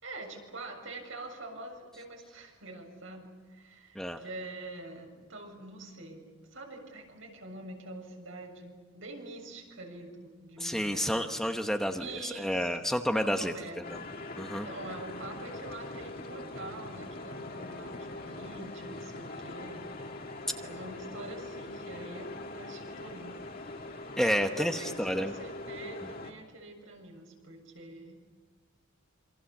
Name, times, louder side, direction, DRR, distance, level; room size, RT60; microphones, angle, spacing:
voice 1, 0.0-11.2 12.0-12.8 13.2-13.8 14.6-19.9 20.6-23.3 23.6-28.2, right 2 dB, 70° right, 2 dB, 7.1 m, -45 dB
voice 2, 10.6-13.5 13.9-14.0 14.4-14.7 24.2-25.3 26.0-26.1, equal, ahead, 4 dB, 1.0 m, -30 dB
sound 1, 13.8-26.3, left 2 dB, 45° left, 2.2 m, -42 dB
27.5 x 26.0 x 7.3 m, 1.5 s
head